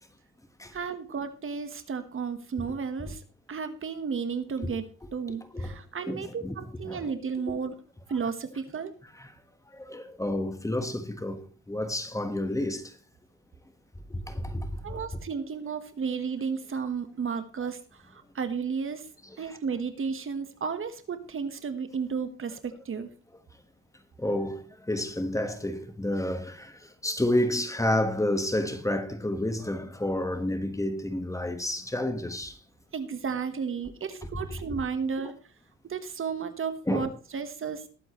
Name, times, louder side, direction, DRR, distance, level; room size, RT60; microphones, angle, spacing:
voice 1, 0.7-3.2 3.5-4.8 5.1-7.7 8.1-8.9 14.8-19.1 19.4-23.1 32.9-35.3 35.8-37.9, right 6 dB, 45° right, 1.4 m, -33 dB
voice 2, 6.1-6.6 6.8-7.1 7.5-7.6 9.2-9.3 9.7-12.9 14.1-15.0 19.5-19.6 24.2-32.6 36.9-37.1, left 1 dB, 10° left, 1.5 m, -30 dB
20.0 x 7.8 x 3.2 m
cardioid pair, 90°, 30 cm